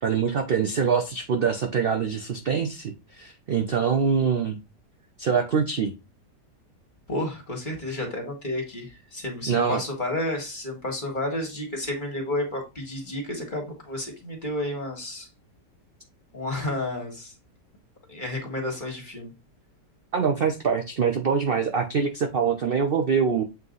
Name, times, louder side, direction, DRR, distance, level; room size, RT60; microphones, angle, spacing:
voice 1, 0.0-4.6 5.2-5.9 9.5-9.8 20.1-23.4, right 6 dB, 65° right, 0.5 m, -24 dB
voice 2, 7.1-15.3 16.3-17.3 18.1-19.3, left 1 dB, 30° left, 1.8 m, -31 dB
8.0 x 3.0 x 3.9 m
omnidirectional pair, 1.9 m